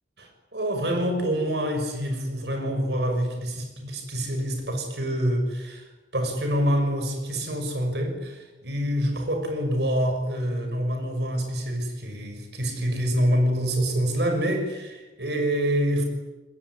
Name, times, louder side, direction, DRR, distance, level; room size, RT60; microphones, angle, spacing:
voice 1, 0.2-5.9 6.1-16.0, equal, 65° right, 5 dB, 6.5 m, -26 dB
27.0 x 21.0 x 10.0 m, 1.2 s
head